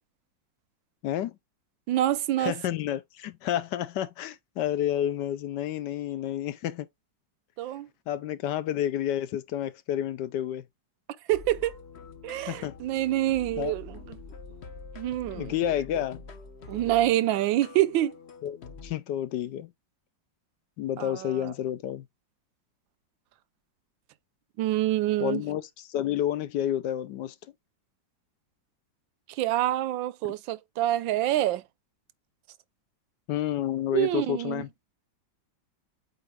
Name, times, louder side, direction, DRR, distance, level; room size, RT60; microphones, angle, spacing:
voice 1, 1.0-1.4 2.4-6.9 8.1-10.6 12.5-12.8 13.6-13.7 15.3-16.2 18.4-18.6 18.8-19.7 20.8-22.1 25.2-27.3 33.3-34.7, left 11 dB, 70° left, 1.2 m, -30 dB
voice 2, 1.9-2.5 7.6-7.9 11.3-11.7 12.2-14.2 15.0-15.5 16.7-18.2 21.0-21.5 24.6-25.4 29.3-31.6 33.9-34.6, right 14 dB, 90° right, 1.4 m, -26 dB
sound 1, 11.3-18.9, left 4 dB, 45° left, 0.9 m, -45 dB
7.9 x 2.6 x 4.7 m
omnidirectional pair, 2.0 m